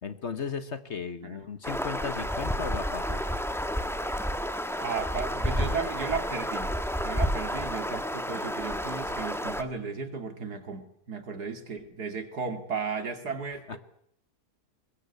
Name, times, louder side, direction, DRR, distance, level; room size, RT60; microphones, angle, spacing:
voice 1, 0.0-3.2 13.7-13.8, left 5 dB, 45° left, 11 dB, 1.4 m, -36 dB
sound 1, 1.6-9.6, equal, ahead, 1.3 m, -31 dB
voice 2, 4.8-6.8 7.0-13.8, right 5 dB, 70° right, 7 dB, 3.1 m, -35 dB
21.5 x 21.5 x 8.3 m, 0.70 s
omnidirectional pair, 1.7 m